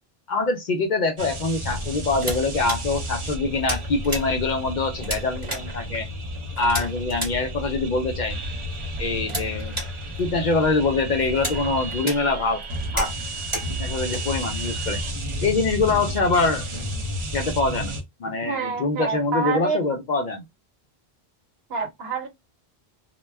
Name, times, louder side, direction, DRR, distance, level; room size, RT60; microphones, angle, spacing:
voice 1, 0.3-6.1 6.6-8.4 9.0-9.8 10.2-12.6 12.9-13.1 13.5-15.0 15.4-16.6 17.3-17.9 18.2-20.4, left 3 dB, 55° left, 0.6 m, -24 dB
sound 1, 1.2-18.0, equal, 35° right, 0.5 m, -32 dB
sound 2, 1.7-15.9, right 1 dB, 20° right, 0.9 m, -35 dB
voice 2, 18.4-19.8 21.7-22.3, right 4 dB, 75° right, 1.1 m, -27 dB
2.2 x 2.1 x 3.2 m
omnidirectional pair, 1.0 m